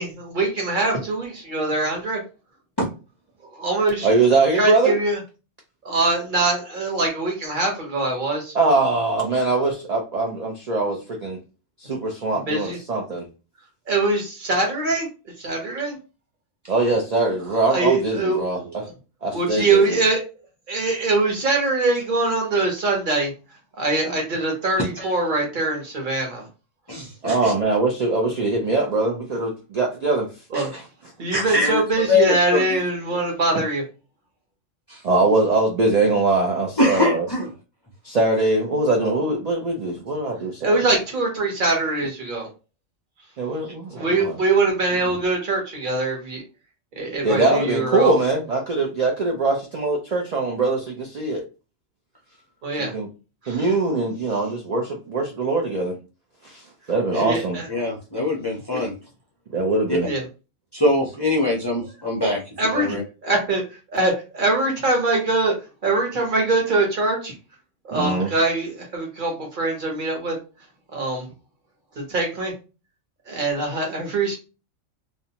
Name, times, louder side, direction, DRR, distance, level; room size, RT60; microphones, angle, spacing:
voice 1, 0.0-2.2 3.5-4.1 4.6-5.2 5.8-8.5 12.5-12.8 13.9-15.1 15.4-16.0 17.7-18.8 19.3-20.2 20.7-23.3 23.8-26.5 30.5-30.7 31.2-33.8 40.6-42.5 43.9-46.4 47.0-48.1 52.6-52.9 53.4-53.7 57.2-57.7 60.0-60.2 62.2-63.0 63.2-63.6 63.9-65.5 65.8-67.3 67.8-70.4 70.9-71.3 72.1-72.5 73.3-74.4, right 2 dB, 45° right, 1 dB, 0.9 m, -23 dB
voice 2, 4.0-5.0 8.5-11.4 11.8-13.3 16.7-18.9 19.2-20.0 27.2-30.3 35.0-37.2 38.0-40.9 43.4-44.4 47.2-51.4 52.8-53.1 53.5-56.0 56.4-56.6 56.9-57.6 58.7-58.8 59.5-60.1 67.9-68.3, right 3 dB, 75° right, 0 dB, 0.3 m, -22 dB
voice 3, 24.8-25.1 26.9-27.5 30.5-30.8 31.3-31.8 32.1-32.8 34.9-35.0 36.8-37.5 57.1-57.2 57.7-58.9 59.9-60.0 60.7-62.4 62.7-63.0, left 2 dB, 40° left, -3 dB, 0.3 m, -23 dB
2.4 x 2.1 x 2.8 m, 0.31 s
omnidirectional pair, 1.3 m